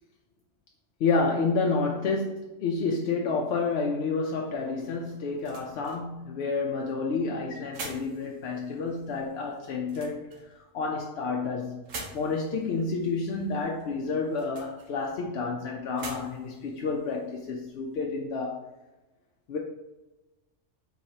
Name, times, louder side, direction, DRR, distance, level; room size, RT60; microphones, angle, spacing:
voice 1, 1.0-11.8 12.1-18.7 19.5-19.6, left 4 dB, 65° left, -1 dB, 0.7 m, -30 dB
sound 1, 4.8-18.0, right 3 dB, 85° right, 1.3 m, -48 dB
4.7 x 3.8 x 2.7 m, 1.0 s
omnidirectional pair, 1.3 m